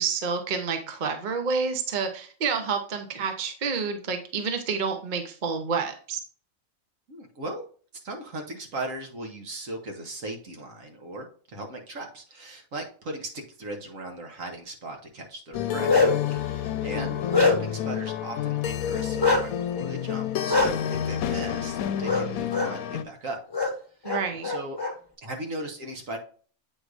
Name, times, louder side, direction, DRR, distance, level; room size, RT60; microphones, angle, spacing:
voice 1, 0.0-6.2 17.0-17.1 24.0-24.5, right 5 dB, 40° right, 6 dB, 0.9 m, -29 dB
voice 2, 7.1-7.6 8.0-16.0 16.4-23.4 24.4-24.8 25.2-26.2, right 2 dB, 70° right, 3 dB, 1.6 m, -38 dB
sound 1, 15.5-23.0, left 10 dB, 85° left, 1.0 m, -29 dB
Bark, 15.5-16.3 16.8-17.8 19.2-19.4 20.5-20.7 22.1-22.2 22.5-22.7 23.5-23.7 24.1-24.9, left 3 dB, 20° left, 1.2 m, -23 dB
8.2 x 4.7 x 2.6 m, 0.43 s
omnidirectional pair, 1.5 m